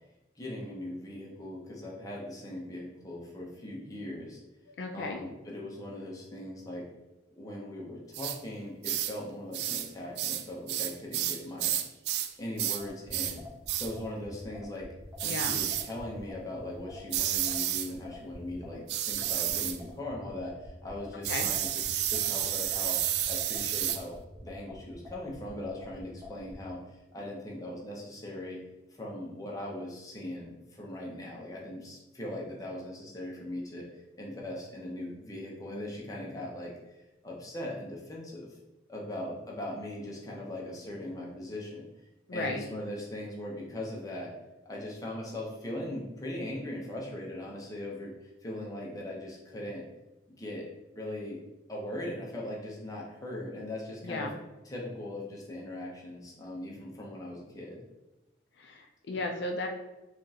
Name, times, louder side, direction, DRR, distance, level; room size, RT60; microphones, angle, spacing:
voice 1, 0.4-4.4 4.9-6.9 7.4-11.8 12.4-13.4 13.7-14.9 15.2-24.1 24.4-26.8 27.1-28.6 28.9-33.9 34.1-36.7 37.2-38.5 38.9-41.9 42.3-44.3 44.6-49.8 50.3-50.7 50.9-51.4 51.7-54.3 54.6-57.8 59.1-59.2, left 1 dB, 20° left, -3 dB, 0.8 m, -40 dB
voice 2, 4.8-5.2 15.2-15.6 21.3-21.5 42.3-42.6 54.0-54.4 58.6-59.7, left 2 dB, 70° left, 3 dB, 0.4 m, -35 dB
sound 1, 8.1-8.4 8.8-9.2 9.5-9.9 10.2-12.3 12.6-12.8 13.1-13.4 13.7-13.9 15.2-15.9 17.1-17.9 18.9-19.8 21.2-24.0, right 11 dB, 60° right, 0.3 m, -31 dB
sound 2, 12.8-26.6, left 2 dB, 5° right, 0.9 m, -46 dB
5.0 x 2.4 x 2.8 m, 1.0 s
head